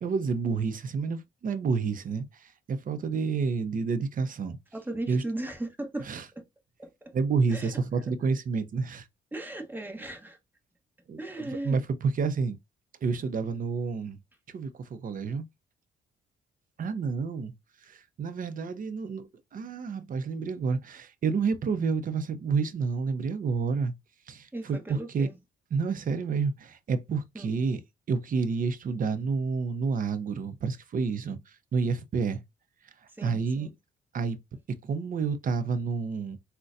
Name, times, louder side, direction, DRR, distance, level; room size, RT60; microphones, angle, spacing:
voice 1, 0.0-4.6 5.1-5.2 6.0-6.3 7.1-9.1 11.1-12.6 13.0-14.2 14.5-15.4 16.8-17.5 17.8-23.9 24.3-25.3 25.7-27.8 28.1-32.4 33.2-33.7 34.1-34.4 34.8-36.4, right 5 dB, 45° right, 0.6 m, -29 dB
voice 2, 4.7-6.1 6.8-6.9 7.5-7.7 9.3-10.4 11.2-11.8 24.5-25.4 27.3-27.6 33.2-33.7, right 1 dB, 10° right, 1.0 m, -37 dB
3.9 x 2.2 x 2.5 m
cardioid pair, 90°, 20 cm